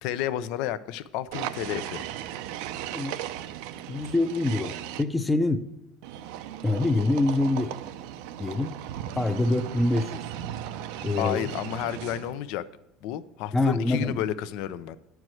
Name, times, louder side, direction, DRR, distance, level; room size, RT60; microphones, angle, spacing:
voice 1, 0.0-2.0 11.2-12.6 13.0-15.0, left 11 dB, 70° left, 14 dB, 0.5 m, -31 dB
sound 1, 1.3-5.0 6.0-12.4, right 11 dB, 80° right, 0.5 m, -37 dB
voice 2, 3.9-5.6 6.6-7.7 8.4-8.7 9.2-10.2 11.0-11.4 13.5-14.2, left 2 dB, 10° left, 8 dB, 0.5 m, -25 dB
9.7 x 4.6 x 7.7 m, 0.88 s
supercardioid pair, 125°, 0 cm